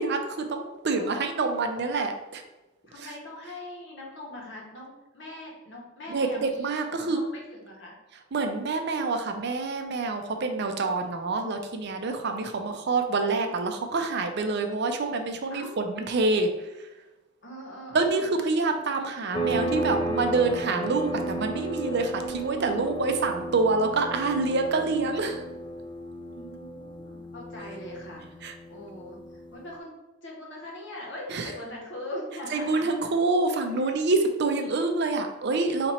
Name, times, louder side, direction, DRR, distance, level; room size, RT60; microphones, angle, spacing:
voice 1, 0.0-2.4 3.0-3.1 6.1-7.2 8.3-16.5 17.9-25.4 28.4-28.5 31.3-31.5 32.5-35.9, right 3 dB, 55° right, 5 dB, 0.5 m, -27 dB
voice 2, 2.8-7.9 12.6-12.9 15.5-15.8 17.4-18.2 26.3-29.9 30.2-32.8, left 1 dB, 65° left, -3 dB, 1.4 m, -41 dB
sound 1, 19.3-29.7, right 1 dB, 25° left, 0.4 m, -34 dB
4.3 x 2.9 x 4.2 m, 1.0 s
head